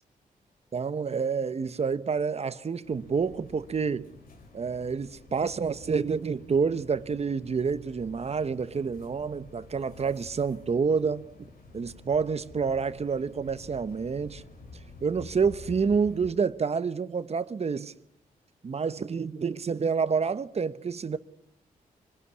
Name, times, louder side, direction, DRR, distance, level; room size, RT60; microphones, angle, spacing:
voice 1, 0.7-4.1 4.5-11.2 11.7-14.4 15.0-17.9 18.6-21.2, right 5 dB, 45° right, 1.1 m, -28 dB
sound 1, 2.8-16.3, left 3 dB, 80° left, 5.0 m, -49 dB
24.5 x 19.0 x 9.8 m
cardioid pair, 75°, 15 cm